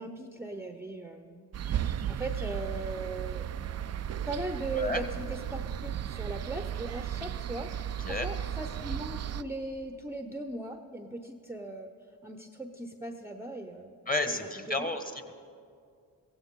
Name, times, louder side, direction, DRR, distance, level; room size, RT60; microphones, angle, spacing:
voice 1, 0.0-3.5 4.3-11.9 12.2-13.9 14.4-15.0, right 2 dB, 5° right, 5 dB, 0.8 m, -39 dB
sound 1, 1.5-9.4, right 10 dB, 40° right, 0.4 m, -35 dB
voice 2, 4.7-5.0 8.0-8.3 14.1-15.3, left 2 dB, 20° left, 7 dB, 1.4 m, -32 dB
16.0 x 15.5 x 3.8 m, 2.3 s
supercardioid pair, 55°, 44 cm